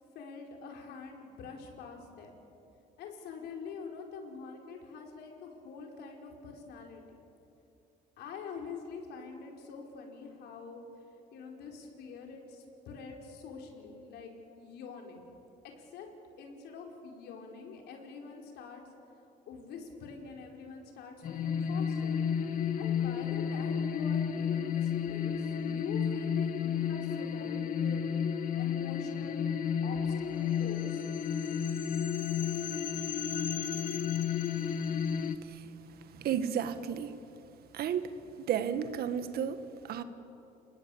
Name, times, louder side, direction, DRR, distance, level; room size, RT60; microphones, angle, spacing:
voice 1, 0.1-2.4 3.0-7.0 8.2-10.9 11.3-15.3 15.8-16.1 16.4-18.8 19.5-22.2 22.8-29.5 29.8-31.0, left 5 dB, 80° left, 1 dB, 5.0 m, -45 dB
sound 1, 21.2-35.4, left 7 dB, 55° left, 1.5 m, -32 dB
voice 2, 35.4-35.7 36.1-37.2 37.7-38.1 38.4-40.0, right 8 dB, 65° right, 10 dB, 1.7 m, -33 dB
29.0 x 19.5 x 8.7 m, 2.8 s
cardioid pair, 110°, 17 cm